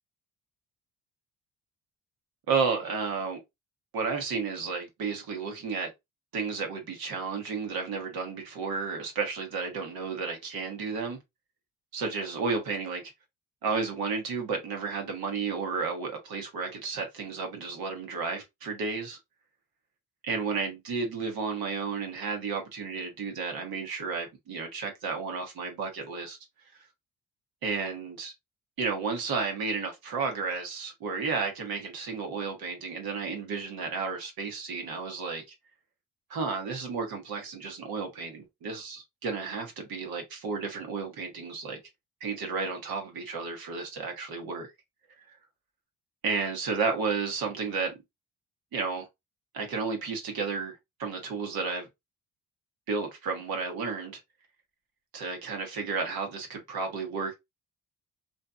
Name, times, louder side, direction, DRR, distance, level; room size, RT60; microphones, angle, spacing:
voice 1, 2.5-3.4 3.9-5.9 6.3-11.2 11.9-13.1 13.6-19.2 20.2-26.4 27.6-28.3 28.8-35.4 36.3-41.8 42.2-44.7 45.3-45.4 46.2-47.9 48.7-49.1 49.5-51.9 52.9-54.2 55.1-57.3, right 4 dB, 70° right, 1.1 m, -32 dB
2.7 x 2.5 x 2.3 m
supercardioid pair, 60°, 38 cm